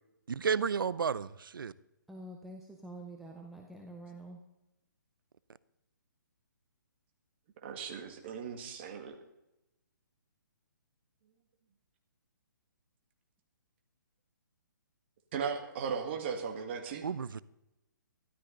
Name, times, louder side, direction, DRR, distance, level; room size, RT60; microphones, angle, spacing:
voice 1, 0.3-1.7 17.0-17.4, right 6 dB, 85° right, 19 dB, 0.6 m, -32 dB
voice 2, 2.1-4.4, right 1 dB, ahead, 0 dB, 0.7 m, -47 dB
voice 3, 7.6-9.2 15.3-17.0, right 6 dB, 35° right, 4 dB, 1.8 m, -37 dB
13.0 x 12.5 x 3.9 m, 0.93 s
hypercardioid pair, 160°, 11 cm